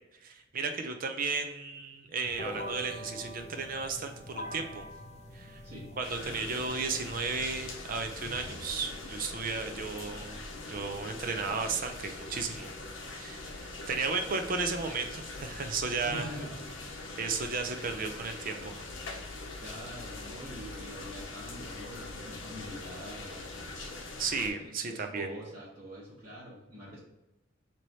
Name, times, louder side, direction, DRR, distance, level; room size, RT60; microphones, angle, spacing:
voice 1, 0.2-4.8 5.3-5.6 6.0-10.4 10.7-12.7 13.1-16.3 17.2-18.9 24.2-25.3, right 4 dB, 45° right, 5 dB, 0.5 m, -34 dB
sound 1, 2.2-7.2, left 1 dB, 35° left, 0.5 m, -44 dB
sound 2, 6.0-24.5, left 2 dB, 65° left, 0.8 m, -42 dB
voice 2, 16.1-16.7 19.6-23.4 24.5-27.0, equal, 30° right, -11 dB, 1.4 m, -44 dB
3.2 x 3.0 x 4.0 m, 0.98 s
head